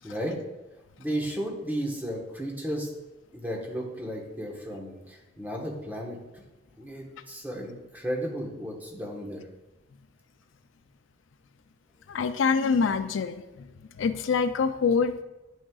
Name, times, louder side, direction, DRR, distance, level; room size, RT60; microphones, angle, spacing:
voice 1, 0.0-0.4 1.0-2.9 3.3-6.4 6.8-9.4, equal, 10° right, -2 dB, 1.2 m, -34 dB
voice 2, 12.1-13.7 14.0-15.2, left 5 dB, 90° left, 10 dB, 0.4 m, -25 dB
9.4 x 6.2 x 2.4 m, 1.0 s
head